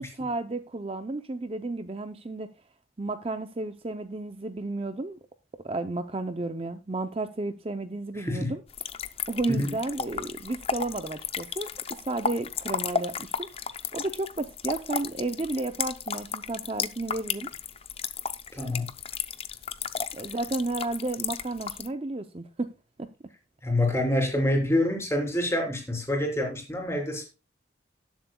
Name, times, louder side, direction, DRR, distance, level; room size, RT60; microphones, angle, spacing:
voice 1, 0.0-2.5 3.0-5.2 5.6-8.6 9.3-13.5 13.9-17.5 20.1-22.7 23.0-23.1, right 2 dB, 30° right, 0.5 m, -32 dB
voice 2, 8.2-8.5 9.5-9.7 18.5-18.9 23.6-27.3, left 1 dB, 15° left, 3.5 m, -26 dB
sound 1, 8.7-21.9, left 6 dB, 30° left, 0.6 m, -34 dB
19.0 x 7.5 x 2.3 m
head